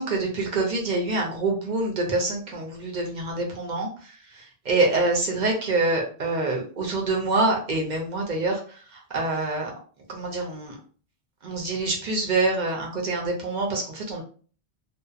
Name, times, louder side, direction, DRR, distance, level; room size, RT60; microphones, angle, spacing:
voice 1, 0.0-9.7 10.1-10.7 11.4-14.2, right 2 dB, 50° right, -1 dB, 0.7 m, -26 dB
2.7 x 2.2 x 2.3 m, 0.41 s
omnidirectional pair, 1.1 m